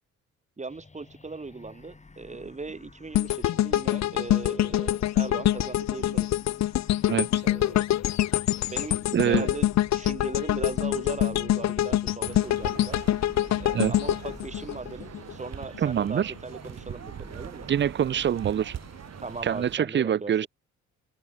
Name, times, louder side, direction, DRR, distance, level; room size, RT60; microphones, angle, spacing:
voice 1, 0.6-6.4 7.4-8.0 8.7-13.0 13.6-17.7 19.2-20.5, right 3 dB, 25° right, 4.1 m, -38 dB
sound 1, 0.7-19.7, left 3 dB, 25° left, 6.8 m, -50 dB
sound 2, 3.1-15.3 15.7-15.9, left 13 dB, 65° left, 0.8 m, -25 dB
voice 2, 9.1-9.5 13.7-13.9 15.8-16.3 17.7-18.8 19.4-20.5, right 9 dB, 40° right, 0.6 m, -25 dB
sound 3, 12.2-19.8, right 10 dB, 60° right, 2.2 m, -42 dB
open air
cardioid pair, 90°, 30 cm